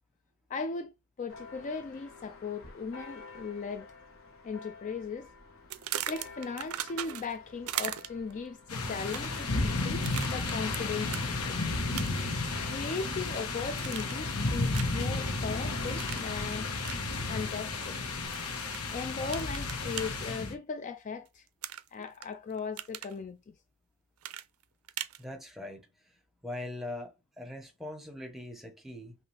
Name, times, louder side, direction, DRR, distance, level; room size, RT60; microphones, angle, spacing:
voice 1, 0.5-0.9 1.2-3.9 4.4-5.3 6.1-11.6 12.6-16.7 17.3-18.0 18.9-21.5 21.9-23.5, left 4 dB, 35° left, 0.3 m, -38 dB
Church bell, 1.3-18.3, left 3 dB, 65° left, 1.3 m, -51 dB
sound 1, 5.7-7.4 7.7-8.3 9.0-9.4 10.0-10.8 11.1-11.3 11.9-12.3 12.7-13.4 13.8-14.3 14.7-15.0 16.0-16.3 16.8-17.0 18.3-18.8 19.3-20.1 21.6-22.3 22.6-23.1 24.2-25.2, right 12 dB, 75° right, 0.5 m, -38 dB
sound 2, 8.7-20.5, left 3 dB, 80° left, 1.1 m, -33 dB
voice 2, 25.2-26.1 26.4-29.2, left 1 dB, ahead, 1.0 m, -42 dB
5.7 x 2.5 x 3.2 m
head